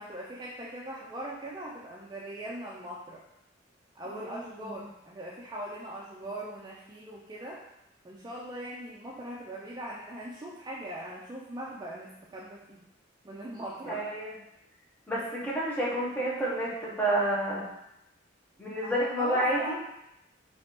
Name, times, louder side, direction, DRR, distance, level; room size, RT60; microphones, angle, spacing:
voice 1, 0.0-3.2 4.0-7.6 8.0-12.8 13.2-14.0 18.8-19.8, right 1 dB, 20° right, -4 dB, 0.3 m, -40 dB
voice 2, 4.1-4.7 13.8-14.3 15.1-17.7 18.6-19.8, right 1 dB, 10° left, -5 dB, 0.6 m, -29 dB
3.1 x 2.4 x 2.9 m, 0.85 s
head